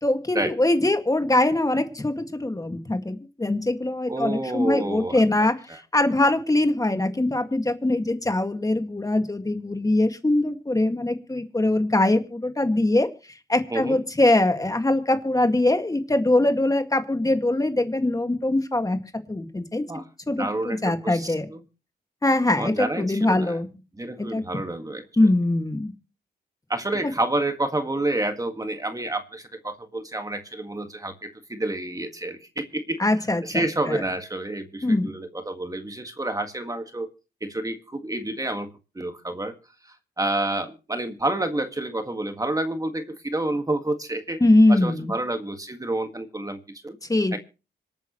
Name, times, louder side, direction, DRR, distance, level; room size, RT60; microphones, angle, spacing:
voice 1, 0.0-13.1 13.5-19.0 19.3-19.8 20.3-21.5 22.2-23.7 24.2-24.4 25.2-25.9 33.0-34.0 34.8-35.1 44.4-45.2 47.1-47.4, left 2 dB, 20° left, 7 dB, 1.9 m, -22 dB
voice 2, 4.1-5.2 5.7-5.8 13.7-14.0 19.9-21.6 22.6-23.6 24.0-25.3 26.7-33.0 33.4-37.1 37.4-38.7 39.0-39.5 39.8-44.4 44.7-47.0 47.3-47.4, right 2 dB, 20° right, 6 dB, 1.8 m, -29 dB
26.0 x 9.1 x 3.1 m, 0.32 s
cardioid pair, 80°, 18 cm